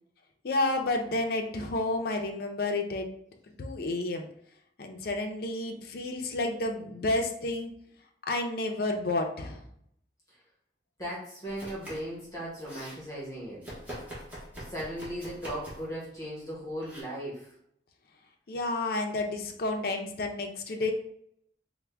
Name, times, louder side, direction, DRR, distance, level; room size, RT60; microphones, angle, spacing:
voice 1, 0.4-3.1 3.6-4.3 4.8-7.7 8.3-9.6 18.5-20.9, left 2 dB, 55° left, 3 dB, 0.4 m, -30 dB
voice 2, 11.0-13.7 14.6-17.5, equal, 20° left, -6 dB, 0.9 m, -37 dB
Domestic sounds home sounds, 11.5-12.2 12.4-13.0 13.6-15.9 16.8-17.0, equal, 10° right, 0.8 m, -43 dB
3.4 x 2.1 x 3.3 m, 0.70 s
head